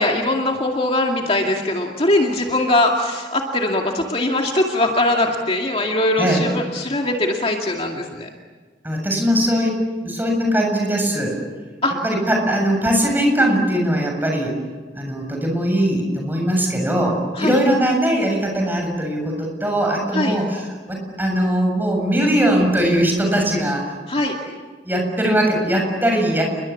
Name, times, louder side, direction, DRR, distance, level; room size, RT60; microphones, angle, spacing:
voice 1, 0.0-8.3 11.8-12.0 17.3-17.6 20.1-20.4 24.1-24.4, left 1 dB, 35° left, 1 dB, 2.3 m, -21 dB
voice 2, 8.8-9.8 10.0-11.4 12.0-14.6 14.9-23.9 24.8-26.4, equal, 10° right, 1 dB, 7.3 m, -20 dB
30.0 x 22.5 x 8.6 m, 1.4 s
head